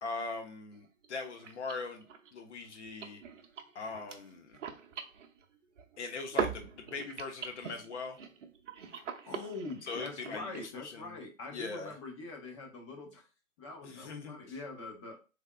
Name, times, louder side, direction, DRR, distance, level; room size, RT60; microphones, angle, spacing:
voice 1, 0.0-2.0 2.3-3.2 3.7-4.6 6.0-8.2 9.9-10.5 10.9-11.2 11.5-11.9 13.8-14.4, left 4 dB, 55° left, 5 dB, 1.1 m, -40 dB
sound 1, 0.7-0.8 1.0-1.1 1.3-6.0 6.3-10.7, right 6 dB, 60° right, 0.7 m, -41 dB
voice 2, 8.8-13.3 13.6-15.2, left 3 dB, 20° left, 1 dB, 0.7 m, -44 dB
3.5 x 3.4 x 2.2 m, 0.32 s
figure-of-eight pair, 135°, 41 cm